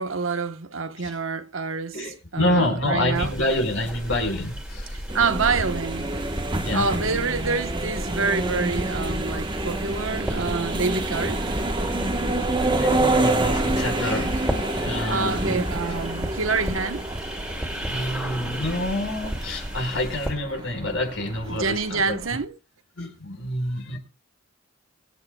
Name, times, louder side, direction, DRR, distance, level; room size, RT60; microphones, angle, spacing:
voice 1, 0.0-2.1 2.3-3.3 5.1-6.1 6.7-11.4 15.1-17.1 21.5-22.6, right 4 dB, 80° right, 1.1 m, -27 dB
voice 2, 1.9-5.0 6.5-6.9 12.1-15.6 17.8-22.2 23.0-24.0, left 1 dB, 70° left, 4.6 m, -28 dB
sound 1, 3.1-20.3, equal, 5° right, 2.4 m, -34 dB
sound 2, 5.1-22.4, right 2 dB, 25° right, 1.2 m, -28 dB
24.5 x 9.5 x 2.3 m
head